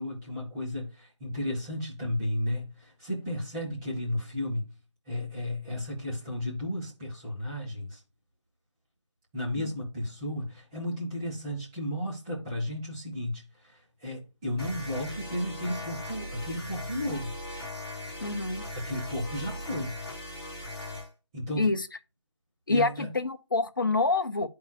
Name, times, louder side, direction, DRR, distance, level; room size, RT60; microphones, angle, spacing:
voice 1, 0.0-4.7 5.1-8.0 9.3-17.4 18.7-20.0 21.3-21.7 22.7-23.1, left 1 dB, 10° right, 1.5 m, -33 dB
sound 1, 14.6-21.1, left 1 dB, 15° left, 2.8 m, -39 dB
voice 2, 18.2-18.7 21.6-21.8 22.7-24.5, left 3 dB, 45° left, 0.9 m, -27 dB
11.0 x 4.8 x 2.3 m
figure-of-eight pair, 160°, 15 cm